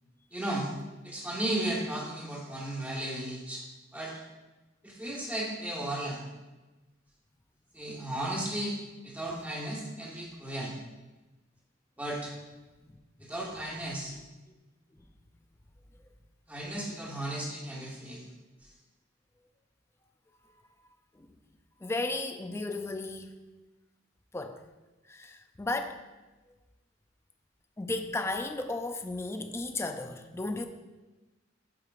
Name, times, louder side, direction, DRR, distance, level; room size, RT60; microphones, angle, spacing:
voice 1, 0.3-0.7 1.0-3.6 3.9-4.2 4.8-6.2 7.7-8.8 9.0-10.8 12.0-12.3 13.2-14.1 16.5-18.2, right 1 dB, 10° right, -4 dB, 1.4 m, -35 dB
voice 2, 21.8-23.3 24.3-24.6 25.1-26.0 27.8-30.6, left 2 dB, 15° left, 6 dB, 0.4 m, -34 dB
10.5 x 4.8 x 2.5 m, 1.1 s
head